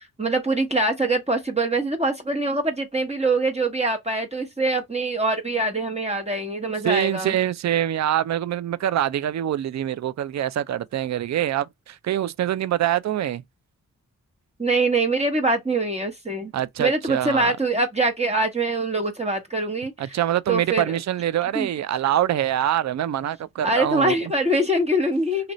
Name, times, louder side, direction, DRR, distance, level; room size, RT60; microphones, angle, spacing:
voice 1, 0.2-7.4 14.6-16.5 16.8-20.2 20.5-21.0 21.5-21.7 23.6-25.5, right 2 dB, 20° right, 1.0 m, -24 dB
voice 2, 6.8-13.4 16.5-17.6 20.0-24.1, right 11 dB, 50° right, 0.4 m, -24 dB
2.9 x 2.5 x 3.0 m
cardioid pair, 45°, 36 cm